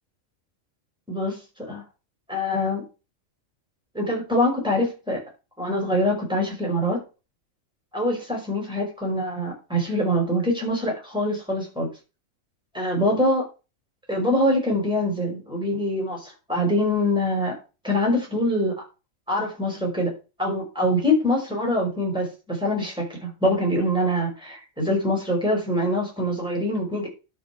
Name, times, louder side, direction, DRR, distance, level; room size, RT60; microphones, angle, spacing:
voice 1, 1.1-1.4 1.7-1.8 2.3-2.8 3.9-5.2 5.6-7.0 7.9-11.9 12.7-13.4 14.1-17.6 17.8-18.7 19.3-20.1 20.4-27.1, left 1 dB, 5° right, 5.4 m, -24 dB
12.0 x 5.5 x 6.1 m
omnidirectional pair, 1.5 m